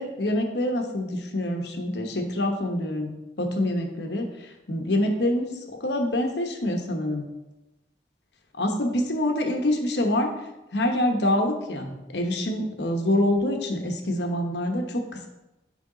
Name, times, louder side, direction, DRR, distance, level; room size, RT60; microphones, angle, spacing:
voice 1, 0.0-3.1 3.4-4.3 4.7-7.3 8.6-10.3 10.7-15.3, left 1 dB, 75° left, 3 dB, 1.0 m, -26 dB
10.0 x 3.5 x 3.8 m, 0.99 s
head